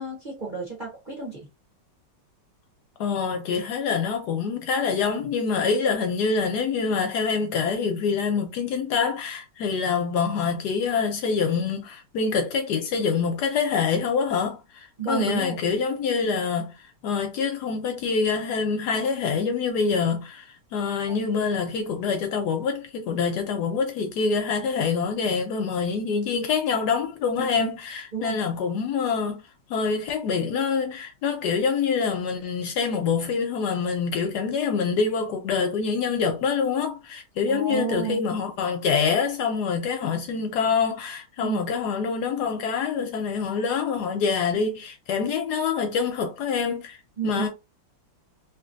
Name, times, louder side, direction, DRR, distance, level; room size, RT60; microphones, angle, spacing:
voice 1, 0.0-1.5 15.0-15.6 21.1-21.2 27.4-27.7 28.1-28.5 37.5-38.2 41.4-41.6 44.5-44.7 47.2-47.4, right 6 dB, 40° right, 0.7 m, -31 dB
voice 2, 3.0-29.4 29.7-47.0 47.2-47.5, left 5 dB, 70° left, 1.0 m, -26 dB
3.0 x 2.5 x 2.4 m
omnidirectional pair, 2.0 m